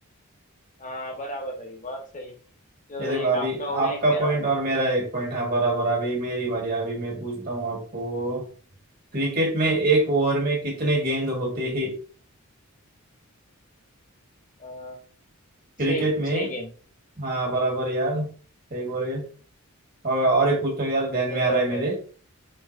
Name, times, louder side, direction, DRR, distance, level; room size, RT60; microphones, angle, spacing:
voice 1, 0.8-2.3 2.9-4.5 14.6-15.0 15.9-16.7 21.3-21.9, equal, 35° left, 1 dB, 1.2 m, -33 dB
voice 2, 3.0-8.4 9.1-12.0 15.8-16.5 17.2-18.3 18.7-19.2 20.0-21.9, right 2 dB, 40° right, 0 dB, 1.5 m, -24 dB
4.6 x 3.8 x 2.5 m, 0.40 s
head